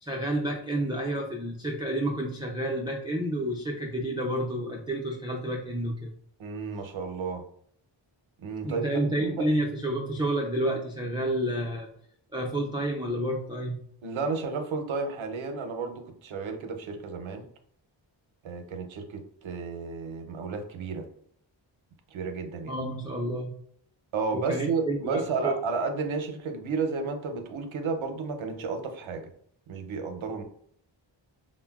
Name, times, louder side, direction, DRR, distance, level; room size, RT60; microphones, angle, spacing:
voice 1, 0.0-6.1 8.6-11.9 12.3-13.8 22.7-23.5 24.3-25.6, right 1 dB, 10° right, -1 dB, 0.3 m, -30 dB
voice 2, 6.4-7.4 8.4-9.5 14.0-17.4 18.4-21.0 22.1-22.8 24.1-29.3 29.7-30.4, right 4 dB, 80° right, 6 dB, 0.6 m, -32 dB
3.6 x 2.1 x 2.3 m, 0.65 s
wide cardioid pair, 85°, 47 cm